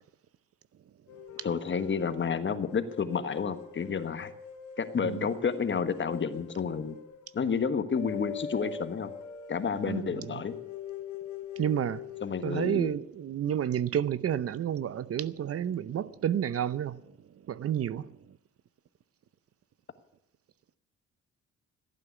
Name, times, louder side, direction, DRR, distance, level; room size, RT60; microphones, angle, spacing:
sound 1, 1.1-12.4, left 7 dB, 85° left, 2.8 m, -43 dB
voice 1, 1.4-4.3 4.8-7.0 7.3-9.1 9.5-10.6 12.2-12.9, left 6 dB, 40° left, 1.3 m, -30 dB
voice 2, 11.6-12.0 12.4-17.0 17.5-18.0, right 9 dB, 50° right, 0.7 m, -30 dB
15.0 x 9.1 x 8.1 m
cardioid pair, 90°, 30 cm